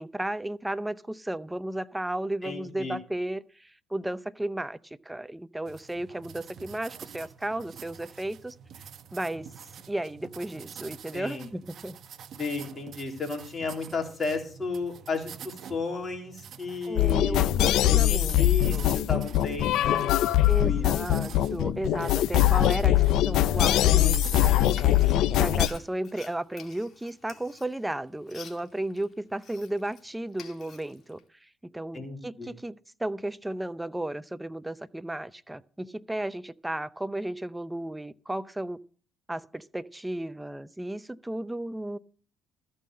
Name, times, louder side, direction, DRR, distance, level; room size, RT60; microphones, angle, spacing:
voice 1, 0.0-8.6 9.1-9.5 9.9-12.0 16.9-18.9 20.5-38.8 39.3-42.0, right 1 dB, 10° right, 0.6 m, -34 dB
voice 2, 2.4-3.0 11.1-11.5 12.4-17.5 17.9-20.1 20.6-20.9 31.9-32.5, left 4 dB, 35° left, 3.6 m, -34 dB
sound 1, 5.7-24.8, right 8 dB, 55° right, 1.0 m, -47 dB
sound 2, 17.0-25.7, left 13 dB, 70° left, 0.5 m, -22 dB
Frying (food), 24.7-30.0 30.3-31.2, left 6 dB, 50° left, 2.3 m, -49 dB
14.0 x 5.5 x 7.7 m
supercardioid pair, 75°, 0 cm